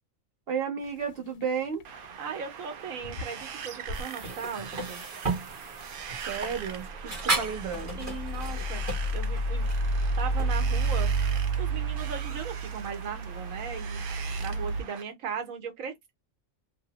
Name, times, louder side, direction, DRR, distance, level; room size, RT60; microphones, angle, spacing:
voice 1, 0.5-1.8 6.2-8.0, right 6 dB, 50° right, 1.2 m, -32 dB
sound 1, 0.8-1.1 1.4-2.0 2.4-2.5 3.0-4.0 6.1-14.8, right 2 dB, 60° left, 0.5 m, -30 dB
Wind, 1.8-15.0, right 7 dB, 65° right, 0.5 m, -42 dB
voice 2, 2.2-5.0 7.9-9.7 10.2-11.1 11.6-16.1, right 6 dB, 80° right, 1.2 m, -38 dB
sound 2, 3.9-10.7, right 2 dB, 30° right, 1.0 m, -35 dB
2.8 x 2.0 x 2.9 m
omnidirectional pair, 1.4 m